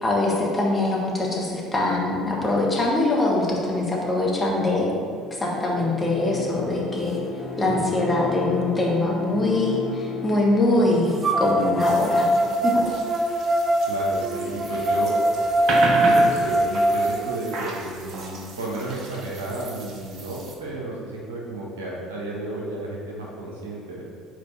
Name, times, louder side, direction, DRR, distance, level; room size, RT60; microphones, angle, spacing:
voice 1, 0.0-4.9 5.4-7.2 7.6-12.3 12.6-12.7, left 2 dB, 20° left, -3 dB, 1.6 m, -23 dB
Bowed string instrument, 5.0-12.8, left 4 dB, 40° left, 0.8 m, -34 dB
sound 1, 7.4-7.5 8.1-10.0 11.2-17.2, right 1 dB, 20° right, 0.7 m, -23 dB
sound 2, 11.8-20.5, right 3 dB, 50° right, 0.9 m, -33 dB
voice 2, 13.9-15.1 15.9-24.1, right 2 dB, 75° right, -4 dB, 1.3 m, -32 dB
4.9 x 4.6 x 5.6 m, 2.2 s
figure-of-eight pair, 60°, 0 cm